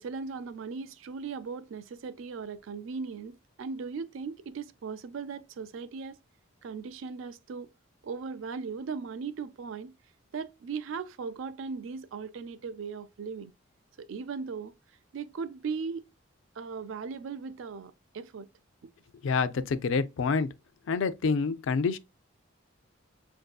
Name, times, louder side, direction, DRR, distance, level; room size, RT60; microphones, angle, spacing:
voice 1, 0.0-6.2 6.6-7.7 8.0-9.9 10.3-13.5 14.0-14.7 15.1-16.0 16.6-18.5, right 5 dB, 70° right, 0.4 m, -38 dB
voice 2, 19.2-20.5 20.9-22.0, left 5 dB, 70° left, 0.4 m, -27 dB
5.8 x 2.6 x 2.3 m
head